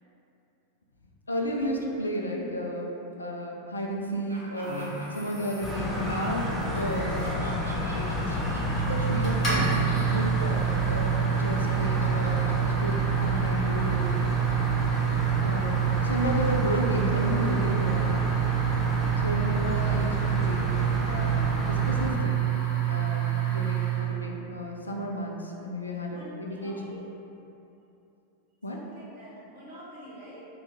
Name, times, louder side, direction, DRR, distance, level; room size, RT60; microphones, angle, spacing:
voice 1, 1.3-2.9 3.2-7.6 7.9-14.1 15.4-15.8 16.0-18.3 19.2-20.7 21.0-22.5 22.9-27.0 28.6-28.8, equal, 80° left, 0 dB, 0.3 m, -33 dB
Laughter, 4.3-6.0 6.4-10.8 11.1-14.7, equal, 85° right, 0.5 m, -45 dB
sound 1, 4.6-24.2, right 11 dB, 30° left, 1.2 m, -28 dB
sound 2, 5.6-22.1, left 1 dB, ahead, 1.0 m, -30 dB
voice 2, 26.1-27.0 28.7-30.5, equal, 55° right, -8 dB, 0.9 m, -46 dB
2.7 x 2.3 x 3.4 m, 2.9 s
figure-of-eight pair, 90°, 0 cm